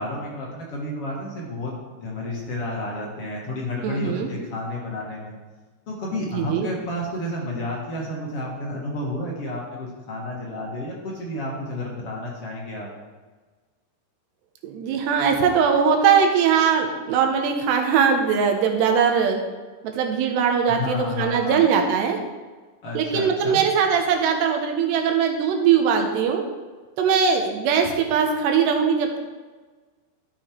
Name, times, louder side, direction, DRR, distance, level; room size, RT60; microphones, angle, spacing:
voice 1, 0.0-5.4 5.9-12.9 20.7-21.6 22.8-23.6, left 1 dB, 50° left, -3 dB, 1.9 m, -31 dB
voice 2, 3.8-4.3 6.3-6.7 14.6-19.4 19.8-22.2 22.9-26.4 27.0-29.2, right 6 dB, 90° right, 3 dB, 3.3 m, -21 dB
12.0 x 7.0 x 4.5 m, 1.4 s
omnidirectional pair, 4.8 m